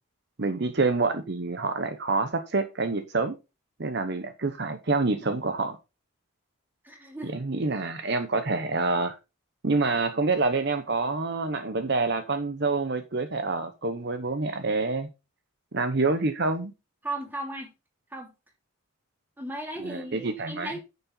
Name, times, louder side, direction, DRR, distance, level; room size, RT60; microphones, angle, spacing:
voice 1, 0.4-3.4 3.8-5.8 7.2-9.2 9.6-15.1 15.7-16.7 19.8-20.7, right 3 dB, 50° right, 0.9 m, -27 dB
voice 2, 6.8-7.3 17.0-17.7 18.1-18.3 19.4-20.8, right 1 dB, 10° right, 2.8 m, -36 dB
9.6 x 7.1 x 4.0 m
head